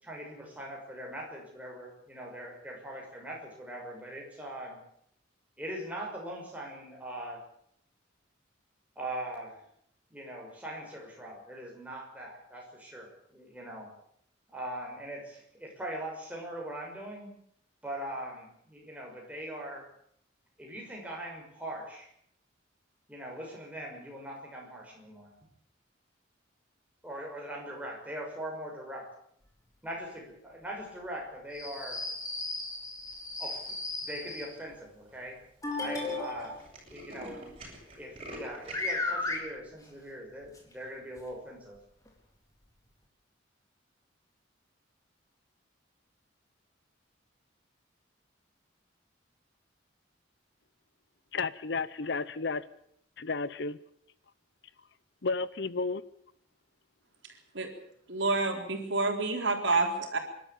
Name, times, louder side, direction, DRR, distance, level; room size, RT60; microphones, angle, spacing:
voice 1, 0.0-4.8 5.6-7.4 9.0-9.6 10.1-13.9 14.5-17.3 17.8-19.9 20.6-22.1 23.1-25.3 27.0-29.1 29.8-32.0 33.4-35.4 35.8-36.6 36.9-37.5 38.0-41.8, right 1 dB, 10° right, 6.3 m, -41 dB
sound 1, 31.5-34.5 35.6-36.6 38.3-38.4 38.7-39.4 40.6-40.7 41.2-41.3 42.1-42.2, left 2 dB, 20° left, 4.0 m, -35 dB
Tools, 32.9-33.3 33.9-34.0 34.2-34.3 34.6-34.8 35.1-35.2 35.5-38.9, right 1 dB, 30° right, 8.0 m, -46 dB
voice 2, 51.3-52.6 53.2-53.8 55.2-56.0, left 4 dB, 60° left, 0.8 m, -32 dB
voice 3, 58.1-60.2, right 3 dB, 70° right, 4.0 m, -28 dB
26.5 x 12.5 x 8.7 m
head